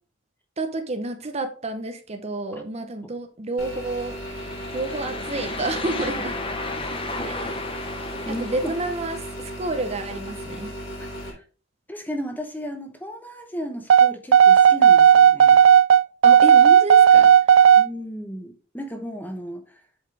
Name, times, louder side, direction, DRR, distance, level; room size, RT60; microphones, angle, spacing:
voice 1, 0.6-4.2 4.7-6.4 7.2-7.6 8.4-10.7 16.2-17.3, right 2 dB, 35° right, 0.8 m, -30 dB
sound 1, 3.6-11.3, equal, 90° left, 3.7 m, -36 dB
sound 2, 4.0-9.4, left 3 dB, 25° left, 1.0 m, -34 dB
voice 2, 8.3-8.7 11.3-11.4 11.9-15.6 17.8-19.6, equal, 10° left, 0.9 m, -34 dB
sound 3, 13.9-17.9, right 8 dB, 75° right, 0.4 m, -12 dB
7.9 x 5.7 x 3.3 m
head